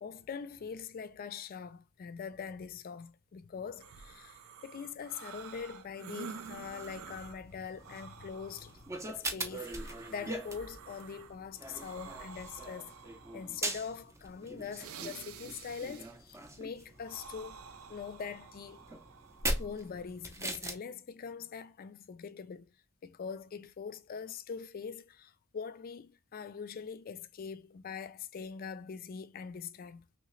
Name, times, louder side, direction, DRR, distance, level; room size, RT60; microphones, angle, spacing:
voice 1, 0.0-8.8 9.1-12.9 13.3-17.6 17.9-18.8 19.6-22.7 23.0-30.1, left 6 dB, 45° left, 0.4 m, -43 dB
sound 1, 3.8-20.8, right 6 dB, 85° right, 0.4 m, -50 dB
sound 2, 6.4-20.7, right 1 dB, 15° right, 0.6 m, -42 dB
3.1 x 2.8 x 3.1 m
head